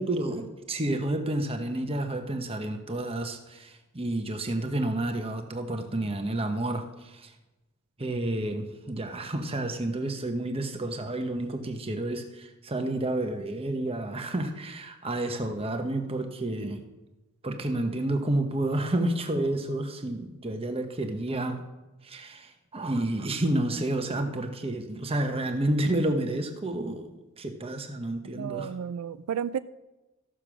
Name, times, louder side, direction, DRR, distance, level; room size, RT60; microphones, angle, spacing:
voice 1, 0.0-7.3 8.0-16.8 17.4-21.6 22.0-27.1 27.4-28.7, right 1 dB, 25° right, 5 dB, 1.0 m, -30 dB
voice 2, 28.4-29.6, right 8 dB, 85° right, 14 dB, 0.3 m, -32 dB
14.0 x 6.7 x 6.1 m, 1.1 s
head